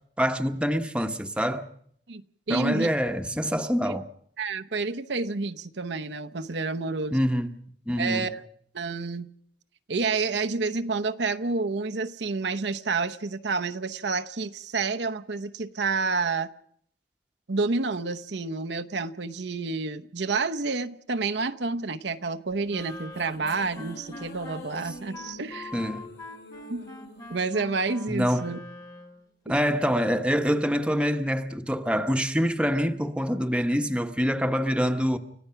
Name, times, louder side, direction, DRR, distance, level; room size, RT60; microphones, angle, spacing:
voice 1, 0.2-1.7 2.5-4.0 7.1-7.5 7.9-8.3 25.7-26.1 28.1-28.6 29.5-35.2, equal, 5° right, 1.0 m, -25 dB
voice 2, 2.5-2.9 4.4-7.2 8.0-8.4 8.7-9.3 9.9-16.5 17.5-25.7 26.7-26.9 27.3-28.6 29.5-29.6, right 4 dB, 70° right, 0.9 m, -29 dB
sound 1, 22.5-29.1, left 2 dB, 65° left, 3.2 m, -47 dB
Wind instrument woodwind instrument, 22.7-29.3, left 1 dB, 20° left, 1.6 m, -44 dB
29.5 x 15.0 x 5.8 m
head